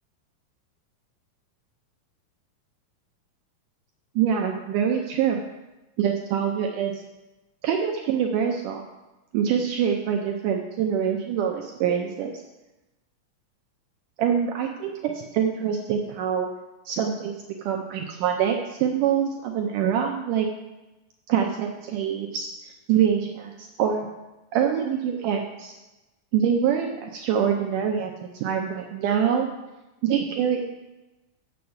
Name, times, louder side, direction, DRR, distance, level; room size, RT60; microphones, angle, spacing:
voice 1, 4.2-5.4 6.0-7.0 7.6-8.8 9.3-12.4 14.2-16.5 16.9-17.4 17.6-20.5 21.3-24.1 24.5-25.7 26.3-28.1 28.4-29.5 30.0-30.7, right 8 dB, 75° right, 2 dB, 2.1 m, -25 dB
6.8 x 6.7 x 7.9 m, 1.1 s
omnidirectional pair, 4.0 m